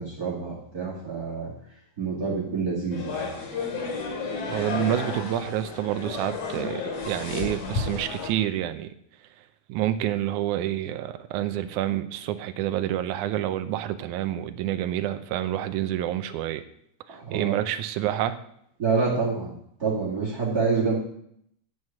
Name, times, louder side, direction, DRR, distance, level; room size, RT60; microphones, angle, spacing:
voice 1, 0.0-1.5 2.0-3.3 17.2-17.6 18.8-19.5 19.8-20.9, right 4 dB, 30° right, -3 dB, 2.6 m, -27 dB
sound 1, 2.9-8.3, left 4 dB, 80° left, 3.8 m, -32 dB
voice 2, 4.5-8.9 9.7-16.6 17.3-18.4, right 12 dB, 85° right, 11 dB, 2.1 m, -28 dB
9.3 x 6.4 x 8.5 m, 0.70 s
omnidirectional pair, 3.4 m